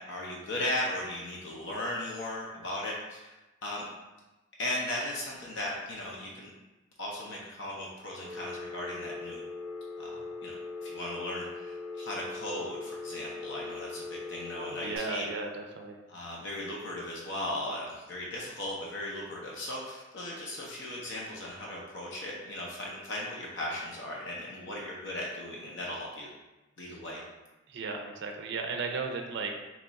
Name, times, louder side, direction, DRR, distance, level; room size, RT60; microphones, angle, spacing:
voice 1, 0.1-3.3 3.6-3.9 4.6-6.5 7.0-9.4 10.0-10.6 10.8-15.3 16.1-26.3 26.8-27.2, left 1 dB, 60° left, -3 dB, 0.6 m, -37 dB
Telephone, 8.2-15.0, left 3 dB, 10° right, 0.6 m, -40 dB
voice 2, 14.7-16.0 26.8-27.0 27.7-29.5, right 4 dB, 60° right, 3 dB, 0.4 m, -35 dB
3.0 x 2.3 x 3.9 m, 1.1 s
head